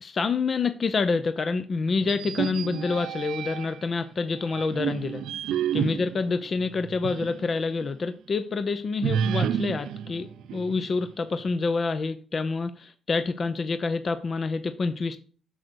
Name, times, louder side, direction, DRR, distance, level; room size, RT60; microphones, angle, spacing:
voice 1, 0.0-5.2 5.7-15.2, left 4 dB, 40° left, 0.6 m, -27 dB
sound 1, 2.0-3.9 4.5-7.4 7.8-7.9 9.0-11.1, right 9 dB, 80° right, 0.4 m, -30 dB
6.5 x 6.3 x 6.3 m
cardioid pair, 90°, 0 cm